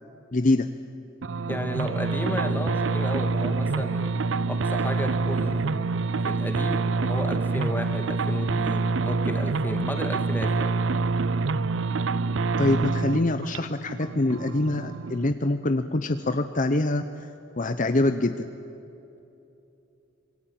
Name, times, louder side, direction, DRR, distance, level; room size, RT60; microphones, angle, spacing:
voice 1, 0.3-0.7 12.6-17.0 17.6-18.3, left 2 dB, 40° left, 9 dB, 0.8 m, -24 dB
sound 1, 1.2-15.3, right 3 dB, 65° right, 0.6 m, -26 dB
voice 2, 1.5-4.1 4.5-10.7, left 1 dB, 10° left, 5 dB, 2.1 m, -33 dB
26.5 x 22.5 x 8.9 m, 2.9 s
head